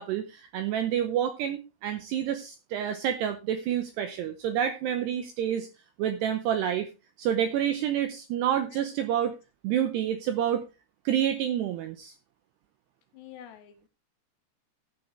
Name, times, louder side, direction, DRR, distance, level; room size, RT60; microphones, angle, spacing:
voice 1, 0.0-5.7 6.0-6.9 7.2-9.3 9.6-10.6 11.1-12.1, right 10 dB, 85° right, 9 dB, 2.4 m, -28 dB
voice 2, 13.1-13.9, left 10 dB, 80° left, 7 dB, 2.6 m, -47 dB
14.5 x 8.9 x 3.3 m, 0.28 s
omnidirectional pair, 5.7 m